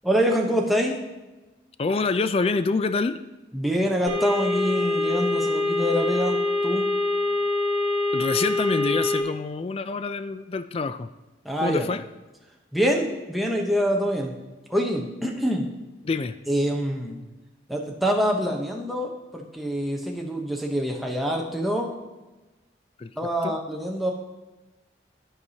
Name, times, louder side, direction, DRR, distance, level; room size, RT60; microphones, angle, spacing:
voice 1, 0.0-1.0 3.5-6.8 11.4-11.9 12.7-14.3 14.7-15.7 16.5-17.2 17.7-21.9 23.2-24.1, equal, ahead, -1 dB, 0.9 m, -25 dB
voice 2, 1.8-3.2 8.1-11.1 11.6-12.0 16.0-16.4 23.0-23.1 23.4-23.6, left 4 dB, 30° left, 11 dB, 0.3 m, -26 dB
sound 1, 4.1-9.2, left 2 dB, 35° right, 1.0 m, -24 dB
13.5 x 4.8 x 2.8 m, 1.1 s
head